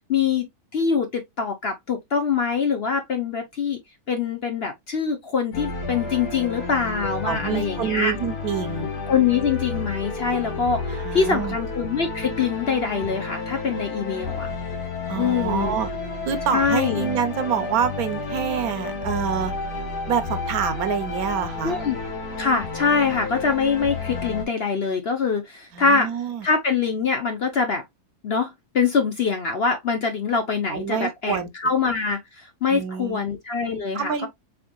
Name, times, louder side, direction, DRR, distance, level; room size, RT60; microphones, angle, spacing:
voice 1, 0.1-3.8 4.1-8.1 9.1-14.5 15.2-15.8 16.5-17.1 21.6-22.0 22.4-26.1 26.4-27.8 28.2-34.3, left 5 dB, 50° left, 0.8 m, -24 dB
sound 1, 5.5-24.4, left 3 dB, 75° left, 1.9 m, -31 dB
voice 2, 7.2-8.9 11.0-11.6 15.1-15.9 16.3-19.5 20.1-21.8 25.7-26.5 30.7-31.5 32.7-33.3 33.9-34.3, right 7 dB, 70° right, 1.1 m, -26 dB
4.5 x 4.1 x 2.2 m
omnidirectional pair, 1.7 m